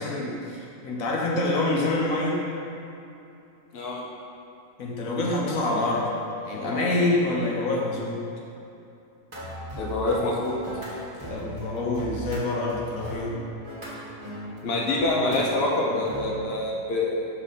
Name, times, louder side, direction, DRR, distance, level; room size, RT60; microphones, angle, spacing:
voice 1, 0.0-2.4 4.8-6.2 6.4-8.3 11.3-13.3, left 2 dB, 75° left, -3 dB, 1.3 m, -26 dB
voice 2, 3.7-4.0 9.8-10.6 14.6-17.3, left 2 dB, 50° left, -3 dB, 1.1 m, -26 dB
sound 1, 9.3-16.4, right 1 dB, 20° right, 1.4 m, -38 dB
5.8 x 5.3 x 4.0 m, 2.8 s
omnidirectional pair, 1.5 m